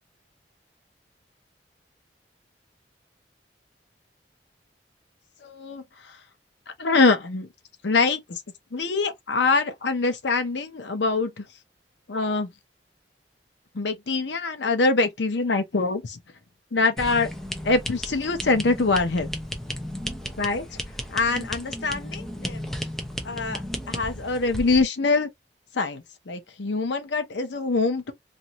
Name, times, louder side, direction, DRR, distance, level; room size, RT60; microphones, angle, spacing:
voice 1, 5.4-6.2 6.7-7.5 7.8-8.4 8.7-11.4 12.1-12.5 13.7-16.2 16.7-17.3 17.6-19.3 20.4-20.8 21.1-22.7 23.2-25.3 25.7-28.1, left 3 dB, 75° left, 0.7 m, -24 dB
sound 1, 17.0-24.8, equal, ahead, 0.7 m, -34 dB
2.6 x 2.6 x 2.9 m
head